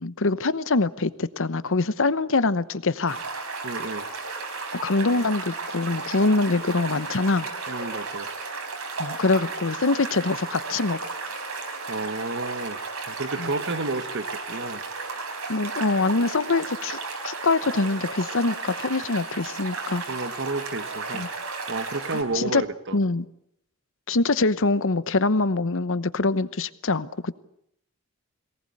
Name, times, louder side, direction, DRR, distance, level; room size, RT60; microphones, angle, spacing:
voice 1, 0.0-3.2 4.7-7.5 9.0-11.0 13.4-13.5 15.5-17.0 17.2-20.0 21.1-21.3 22.3-22.6 22.9-23.3 24.1-27.4, left 3 dB, 65° left, 15 dB, 1.0 m, -24 dB
sound 1, 3.1-22.2, right 4 dB, 80° right, 4.5 m, -34 dB
voice 2, 3.6-4.1 7.7-8.3 11.9-12.8 13.1-14.8 20.1-21.3 21.7-23.0, right 3 dB, 60° right, 11 dB, 1.6 m, -31 dB
22.5 x 19.0 x 8.8 m, 0.77 s
head